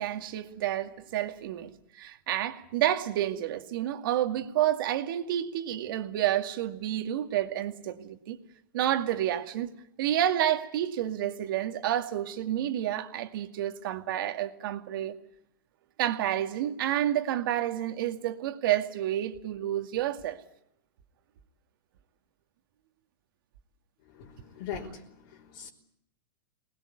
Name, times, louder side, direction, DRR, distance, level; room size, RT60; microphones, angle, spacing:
voice 1, 0.0-8.4 8.7-9.7 10.0-15.1 16.0-20.4, right 12 dB, 70° right, 2.3 m, -29 dB
voice 2, 24.1-25.7, left 8 dB, 60° left, 3.7 m, -41 dB
23.5 x 19.5 x 9.7 m
hypercardioid pair, 125°, 12 cm